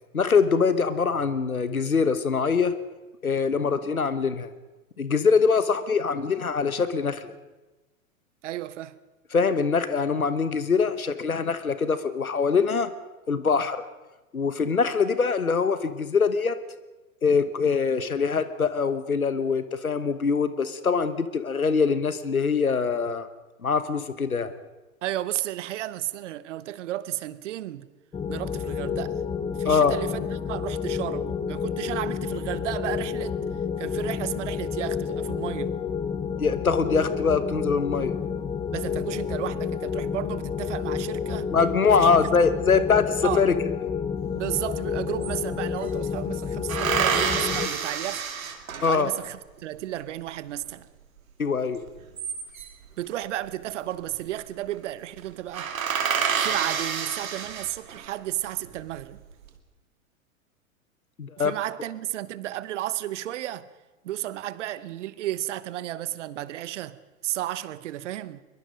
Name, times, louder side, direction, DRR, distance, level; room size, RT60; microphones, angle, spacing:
voice 1, 0.1-2.7 3.2-4.5 5.0-7.3 9.3-12.9 13.3-13.8 14.3-16.6 17.2-23.3 23.6-24.5 29.6-30.0 36.4-38.1 41.5-43.5 48.8-49.1 51.4-51.8 61.2-61.5, left 5 dB, 90° left, 1.2 m, -23 dB
voice 2, 8.4-9.0 25.0-27.9 28.3-29.2 29.6-33.4 33.8-35.8 38.7-41.5 42.0-42.1 43.2-43.5 44.3-48.3 48.8-50.9 53.0-55.7 56.4-59.2 61.4-63.7 64.0-67.0 67.2-68.4, right 13 dB, 55° right, 1.1 m, -33 dB
sound 1, 28.1-47.7, left 6 dB, 15° left, 1.1 m, -30 dB
sound 2, 44.6-44.7 44.9-45.9 46.7-49.2 51.9-52.9 54.0-54.4 54.7-54.8 55.2-55.3 55.5-58.1 58.7-59.3, right 7 dB, 75° right, 2.5 m, -28 dB
23.0 x 22.5 x 5.2 m
figure-of-eight pair, 100°, 42 cm